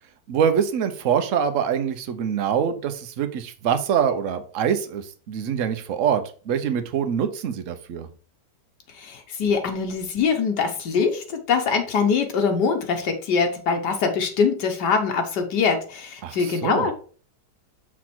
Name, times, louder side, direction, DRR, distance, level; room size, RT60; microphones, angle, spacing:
voice 1, 0.3-8.1 16.2-16.9, right 8 dB, 60° right, 9 dB, 0.9 m, -24 dB
voice 2, 9.0-16.9, left 5 dB, 75° left, 5 dB, 1.5 m, -23 dB
6.1 x 4.0 x 4.4 m, 0.40 s
omnidirectional pair, 1.9 m